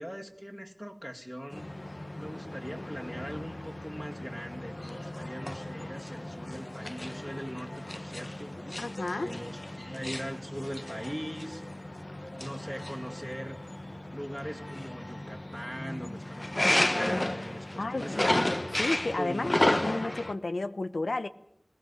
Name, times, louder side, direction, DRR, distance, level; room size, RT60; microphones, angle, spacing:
voice 1, 0.0-1.7 2.2-8.5 9.2-11.6 12.4-13.6 14.1-18.5 19.0-19.5 19.9-20.1, equal, ahead, 2.2 m, -41 dB
sound 1, 1.5-20.3, left 1 dB, 40° left, 1.3 m, -33 dB
voice 2, 8.8-9.3 17.8-18.4 18.8-21.3, left 2 dB, 85° left, 1.0 m, -32 dB
21.5 x 17.0 x 9.8 m
wide cardioid pair, 45°, 0 cm